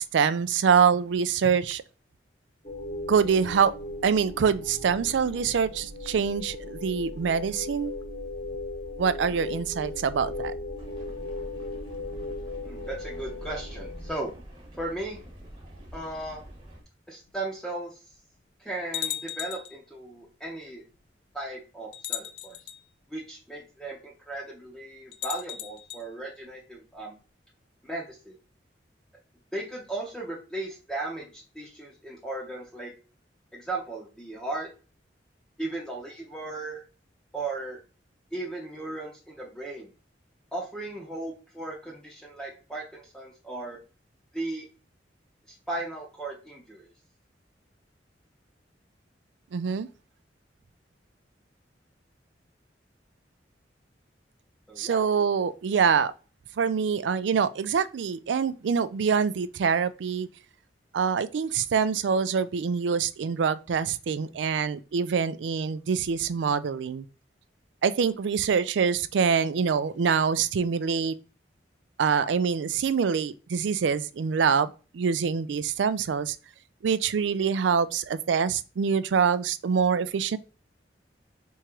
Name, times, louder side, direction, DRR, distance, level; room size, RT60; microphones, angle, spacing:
voice 1, 0.0-1.8 3.1-3.7 4.0-7.9 9.0-10.5 49.5-49.9 54.8-56.1 56.6-60.3 60.9-67.1 67.8-71.1 72.0-76.4 76.8-80.4, right 6 dB, 90° right, 0.4 m, -25 dB
sound 1, 2.6-14.1, left 2 dB, 45° left, 1.0 m, -37 dB
voice 2, 9.3-9.6 12.6-14.3 14.8-15.2 15.9-16.4 17.1-18.0 18.6-20.8 21.3-22.6 23.1-27.2 27.8-28.3 29.5-32.9 33.5-34.7 35.6-36.8 37.3-37.8 38.3-39.9 40.5-43.8 44.3-44.7 45.7-46.9 54.7-55.0, right 2 dB, 5° left, 0.7 m, -36 dB
sound 2, 10.8-16.8, right 1 dB, 30° right, 1.2 m, -48 dB
sound 3, 17.3-17.4 18.1-18.2 18.9-19.8 20.9-21.0 21.9-22.8 25.1-26.0, left 11 dB, 75° left, 0.4 m, -35 dB
3.6 x 3.0 x 4.5 m
head